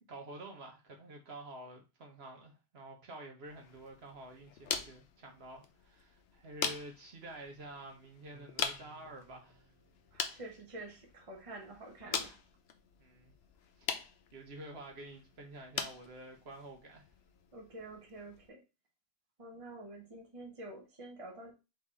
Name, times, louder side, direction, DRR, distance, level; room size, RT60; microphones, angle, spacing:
voice 1, 0.1-9.7 13.0-13.3 13.8-13.9 14.3-17.0, right 2 dB, 70° right, 1.3 m, -49 dB
sound 1, 3.5-18.5, left 7 dB, 70° left, 0.9 m, -43 dB
sound 2, 8.3-10.9, right 7 dB, 90° right, 1.2 m, -62 dB
voice 2, 10.1-12.4 17.5-18.6 19.4-21.5, right 2 dB, 30° right, 1.1 m, -48 dB
3.7 x 3.4 x 4.1 m
omnidirectional pair, 1.1 m